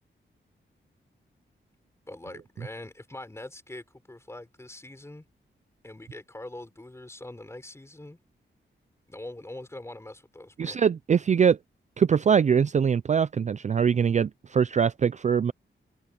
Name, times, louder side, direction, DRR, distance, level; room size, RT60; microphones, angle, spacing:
voice 1, 2.1-5.3 5.8-8.2 9.1-10.8, left 1 dB, 15° left, 4.5 m, -43 dB
voice 2, 10.6-11.6 12.0-15.5, right 7 dB, 40° right, 0.4 m, -22 dB
wide cardioid pair, 125°, 19 cm